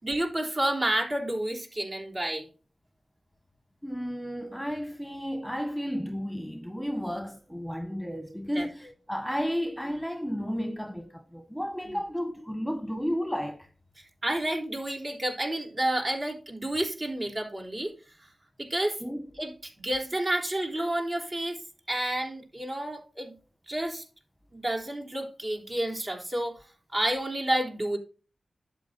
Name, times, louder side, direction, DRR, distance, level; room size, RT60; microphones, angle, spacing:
voice 1, 0.0-2.5 8.6-8.7 11.8-12.0 14.2-17.9 18.6-19.0 19.4-21.6 21.9-23.4 23.7-24.0 24.5-26.6 26.9-28.0, right 1 dB, 45° right, 3.7 m, -30 dB
voice 2, 3.8-13.7 19.0-19.3, equal, 5° right, 1.6 m, -33 dB
11.0 x 7.6 x 2.7 m
cardioid pair, 50°, 0 cm